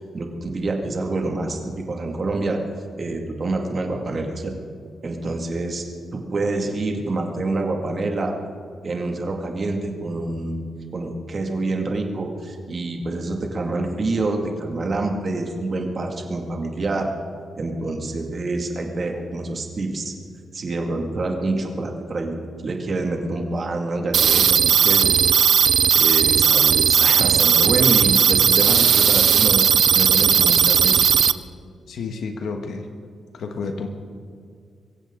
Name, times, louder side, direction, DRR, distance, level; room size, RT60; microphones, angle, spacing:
voice 1, 0.0-2.6 3.0-4.5 5.0-5.8 6.1-8.3 8.8-17.1 17.6-20.1 20.5-25.5 25.9-29.6 29.9-31.0, right 2 dB, 35° right, 2 dB, 2.2 m, -27 dB
sound 1, 24.1-31.3, right 8 dB, 65° right, 0.5 m, -16 dB
voice 2, 31.9-32.9 33.3-33.9, left 4 dB, 75° left, 5 dB, 1.4 m, -30 dB
24.0 x 15.0 x 3.9 m, 2.3 s
wide cardioid pair, 145°, 0 cm